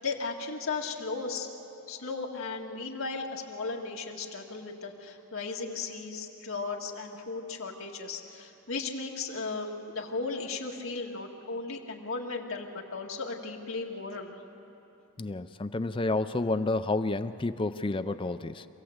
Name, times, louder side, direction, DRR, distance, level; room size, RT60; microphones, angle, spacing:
voice 1, 0.0-1.5 1.9-14.3, left 4 dB, 65° left, 0 dB, 2.1 m, -36 dB
voice 2, 15.2-18.7, left 2 dB, 25° left, 10 dB, 0.4 m, -30 dB
26.5 x 17.0 x 8.0 m, 3.0 s
head